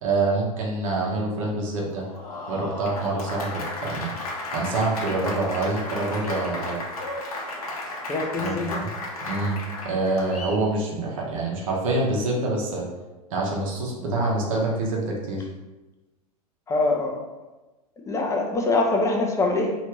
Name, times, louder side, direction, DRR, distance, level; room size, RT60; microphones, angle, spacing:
voice 1, 0.0-2.0 2.5-4.1 4.5-6.8 8.4-8.9 9.3-9.6 9.8-12.8 13.3-15.5, right 2 dB, 60° right, -2 dB, 0.9 m, -26 dB
Applause, 1.9-10.6, left 2 dB, 75° left, 0.7 m, -34 dB
voice 2, 8.1-8.8 16.7-17.2 18.1-19.8, left 2 dB, 15° left, 1 dB, 0.5 m, -24 dB
3.3 x 2.7 x 3.0 m, 1.1 s
figure-of-eight pair, 90°, 19 cm